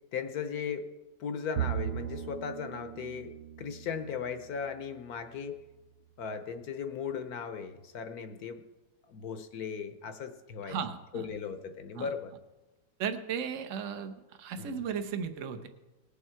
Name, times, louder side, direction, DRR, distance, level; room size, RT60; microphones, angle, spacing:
voice 1, 0.1-0.9 1.2-5.6 6.2-8.6 9.1-10.8 11.1-12.3 14.6-14.8, left 6 dB, 65° left, 9 dB, 1.2 m, -37 dB
Bowed string instrument, 1.6-5.1, right 11 dB, 80° right, 1.3 m, -38 dB
voice 2, 10.6-11.3 11.9-12.1 13.0-15.7, right 7 dB, 50° right, 8 dB, 1.1 m, -35 dB
19.5 x 7.3 x 4.5 m, 1.1 s
omnidirectional pair, 1.9 m